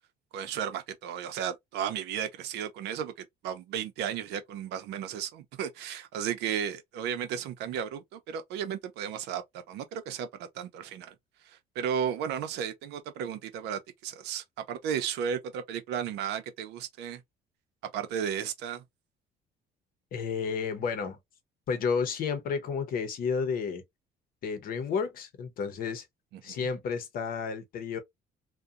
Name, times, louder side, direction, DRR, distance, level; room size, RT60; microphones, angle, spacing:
voice 1, 0.3-3.1 3.4-11.1 11.5-17.2 17.9-18.8 26.3-26.7, right 8 dB, 85° right, 0.6 m, -34 dB
voice 2, 20.1-21.2 21.7-23.8 24.4-26.1 26.4-28.0, left 5 dB, 60° left, 0.7 m, -31 dB
2.7 x 2.2 x 2.4 m
cardioid pair, 110°, 17 cm